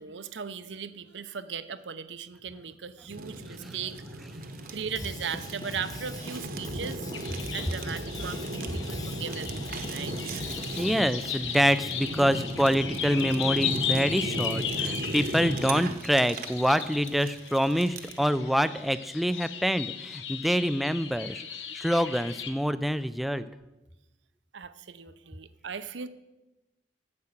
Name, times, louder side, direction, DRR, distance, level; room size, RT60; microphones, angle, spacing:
voice 1, 0.0-4.0 4.7-7.1 7.5-10.2 24.5-26.1, right 6 dB, 85° right, 13 dB, 0.7 m, -38 dB
Fire, 3.1-18.2, right 2 dB, 55° right, 1.0 m, -37 dB
Drum kit / Drum, 4.9-10.9, left 2 dB, 20° left, 0.8 m, -43 dB
sound 1, 7.1-22.5, left 8 dB, 85° left, 1.0 m, -36 dB
voice 2, 10.8-23.5, equal, ahead, 13 dB, 0.4 m, -26 dB
9.6 x 7.8 x 7.2 m, 1.0 s
head